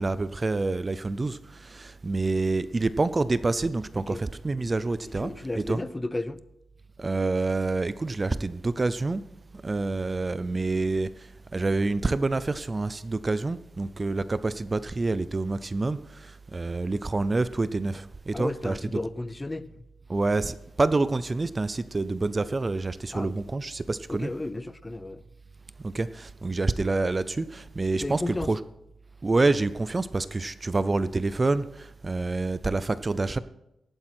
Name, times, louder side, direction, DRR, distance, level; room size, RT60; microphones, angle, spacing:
voice 1, 0.0-5.3 5.6-5.8 7.0-9.2 9.6-18.7 20.1-24.3 25.8-28.6 29.2-33.4, right 3 dB, 25° right, 0.5 m, -27 dB
voice 2, 5.1-6.4 18.3-19.7 23.1-23.3 24.1-25.2 27.9-28.5, left 2 dB, 15° left, 0.6 m, -33 dB
16.0 x 11.5 x 4.4 m
wide cardioid pair, 120°, 0 cm